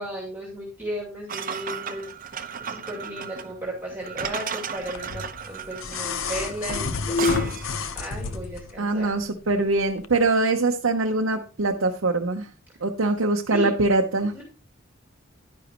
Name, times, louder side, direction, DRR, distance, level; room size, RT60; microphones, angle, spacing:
voice 1, 0.0-2.4 2.7-7.5 7.9-9.1 13.5-13.7 14.3-14.4, equal, 10° right, -3 dB, 2.4 m, -35 dB
sound 1, 1.3-7.8, right 6 dB, 45° right, 0.8 m, -34 dB
sound 2, 4.9-8.7 10.0-10.1, left 4 dB, 90° left, 0.8 m, -28 dB
voice 2, 8.8-12.5 12.8-14.3, right 2 dB, 80° right, 2 dB, 0.8 m, -23 dB
10.5 x 10.0 x 3.0 m, 0.35 s
head